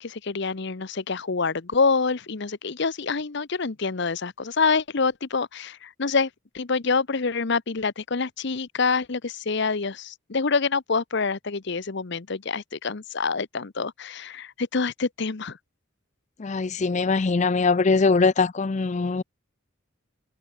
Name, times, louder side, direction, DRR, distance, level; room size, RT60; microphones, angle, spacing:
voice 1, 0.0-6.3 6.5-15.6, left 4 dB, 55° left, 0.8 m, -26 dB
voice 2, 16.4-19.2, left 4 dB, 35° left, 0.4 m, -22 dB
head